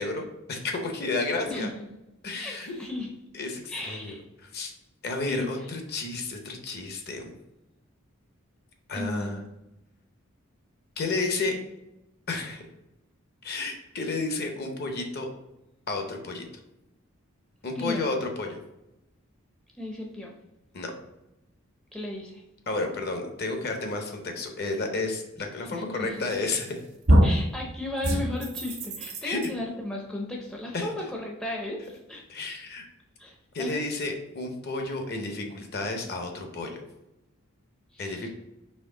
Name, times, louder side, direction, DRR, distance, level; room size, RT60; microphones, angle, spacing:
voice 1, 0.0-1.7 2.2-2.8 3.3-4.1 4.5-4.7 5.0-7.3 8.9-9.4 11.0-11.5 12.3-12.6 13.4-15.3 15.9-16.5 17.6-18.6 20.7-20.9 22.7-26.8 29.2-29.4 30.7-30.9 32.3-32.8 33.5-36.8 38.0-38.3, left 3 dB, 45° left, 4 dB, 0.7 m, -31 dB
voice 2, 2.4-3.1 3.7-4.2 5.3-5.7 8.9-9.5 17.8-18.1 19.8-20.3 21.9-22.4 25.4-26.1 27.2-32.2 33.2-33.8 37.9-38.3, left 1 dB, 5° left, -1 dB, 0.5 m, -35 dB
sound 1, 26.3-26.7 27.1-27.5 28.0-29.5, equal, 85° right, 1.0 m, -22 dB
4.3 x 3.1 x 3.7 m, 0.91 s
head